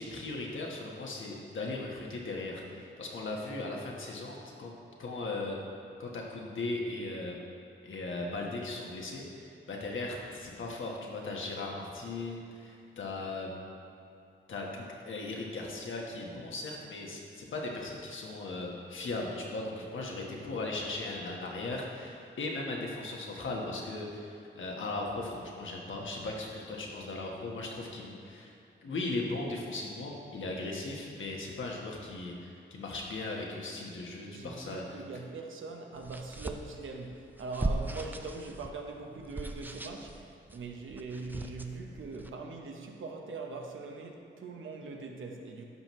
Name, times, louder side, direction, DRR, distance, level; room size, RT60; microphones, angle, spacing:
voice 1, 0.0-4.7 5.0-5.6 6.0-7.4 7.8-13.6 14.5-28.5 28.8-35.0, left 2 dB, 75° left, -1 dB, 1.3 m, -38 dB
voice 2, 34.2-45.6, right 3 dB, 85° right, 2 dB, 0.9 m, -42 dB
sound 1, 36.0-42.3, right 1 dB, 10° right, 0.5 m, -39 dB
11.0 x 5.9 x 3.1 m, 2.6 s
cardioid pair, 65°, 20 cm